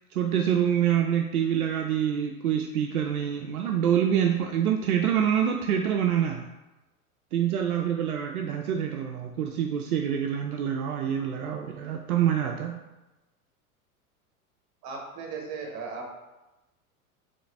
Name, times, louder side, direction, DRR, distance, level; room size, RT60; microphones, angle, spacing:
voice 1, 0.1-6.5 7.3-12.8, right 9 dB, 75° right, 3 dB, 0.5 m, -26 dB
voice 2, 14.8-16.1, right 4 dB, 40° right, 1 dB, 1.1 m, -36 dB
3.8 x 3.4 x 3.3 m, 1.0 s
figure-of-eight pair, 90°, 45 cm